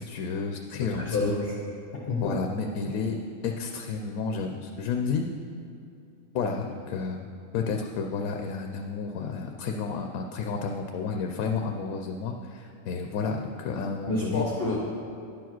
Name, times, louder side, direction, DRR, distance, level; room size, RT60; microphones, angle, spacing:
voice 1, 0.0-1.3 2.2-5.3 6.3-7.3 7.5-14.5, left 5 dB, 90° left, 3 dB, 1.0 m, -31 dB
voice 2, 0.8-1.5 2.1-2.4 14.1-15.0, left 3 dB, 50° left, -3 dB, 1.0 m, -28 dB
9.9 x 4.7 x 6.0 m, 2.7 s
omnidirectional pair, 1.5 m